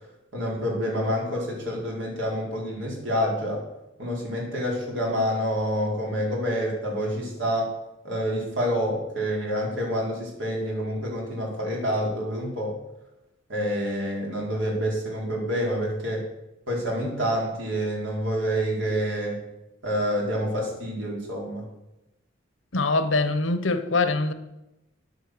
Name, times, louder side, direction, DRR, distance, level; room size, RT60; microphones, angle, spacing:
voice 1, 0.3-3.6 4.0-7.7 8.0-12.7 13.5-16.2 16.7-19.4 19.8-21.6, equal, 85° right, 4.4 m, -27 dB
voice 2, 22.7-24.3, left 3 dB, 80° left, 1.1 m, -23 dB
11.0 x 8.0 x 7.9 m
head